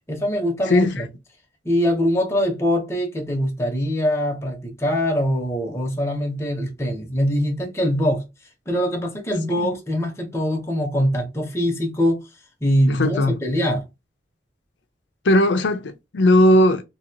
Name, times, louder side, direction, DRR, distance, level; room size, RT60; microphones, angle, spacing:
voice 1, 0.1-1.1 1.6-8.2 8.7-12.2 12.6-13.8, equal, 15° left, 1.0 m, -23 dB
voice 2, 0.7-1.0 9.6-9.7 12.9-13.3 15.3-16.8, left 1 dB, 80° left, 0.5 m, -17 dB
2.9 x 2.8 x 2.8 m
head